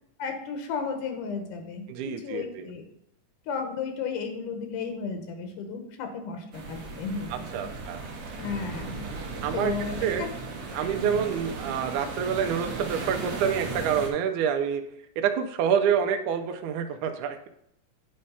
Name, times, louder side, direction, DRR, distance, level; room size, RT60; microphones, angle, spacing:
voice 1, 0.2-2.8 3.5-7.5 8.4-10.3 10.9-11.3, left 5 dB, 85° left, 5 dB, 2.5 m, -34 dB
voice 2, 1.9-2.7 7.3-8.0 9.4-9.7 10.0-10.2 10.7-14.8 15.2-17.5, right 8 dB, 80° right, 6 dB, 2.0 m, -27 dB
sound 1, 6.5-14.1, right 3 dB, 60° right, 1.8 m, -36 dB
8.6 x 3.2 x 5.5 m, 0.74 s
omnidirectional pair, 3.6 m